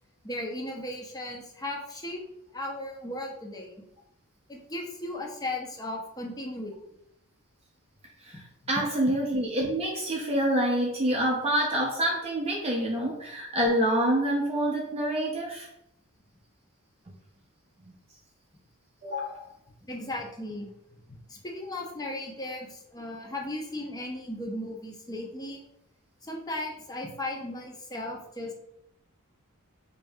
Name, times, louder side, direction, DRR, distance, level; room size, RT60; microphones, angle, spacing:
voice 1, 0.2-2.2 2.5-3.8 4.5-6.7 8.3-8.4 19.9-20.7 21.1-25.6 26.2-28.5, left 1 dB, 15° left, 0 dB, 0.7 m, -36 dB
voice 2, 8.7-15.7 19.0-19.4, right 1 dB, 30° right, -2 dB, 0.6 m, -27 dB
5.1 x 2.7 x 2.3 m, 0.77 s
head